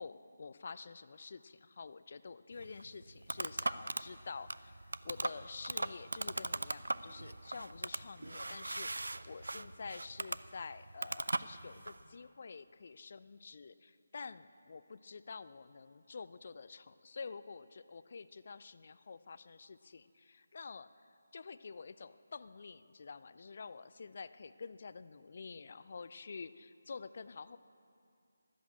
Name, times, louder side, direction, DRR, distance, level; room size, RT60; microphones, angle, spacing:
voice 1, 0.0-20.9 21.3-27.6, left 5 dB, 40° left, 14 dB, 0.5 m, -48 dB
sound 1, 2.5-12.0, right 2 dB, 65° right, 0.4 m, -40 dB
13.5 x 12.0 x 8.3 m, 2.4 s
figure-of-eight pair, 155°, 0 cm